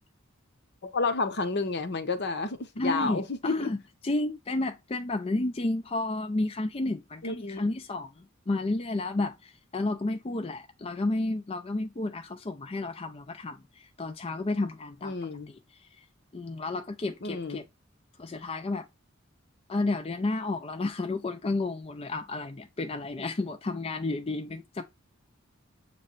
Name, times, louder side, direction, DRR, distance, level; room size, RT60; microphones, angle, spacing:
voice 1, 0.8-3.7 7.2-7.6 15.0-15.5 17.2-17.6, left 3 dB, 55° left, 0.9 m, -30 dB
voice 2, 2.8-3.8 4.0-15.1 15.7-15.9 16.3-17.6 18.2-18.9 19.7-24.8, left 2 dB, 30° left, 0.5 m, -31 dB
7.6 x 3.2 x 4.0 m
head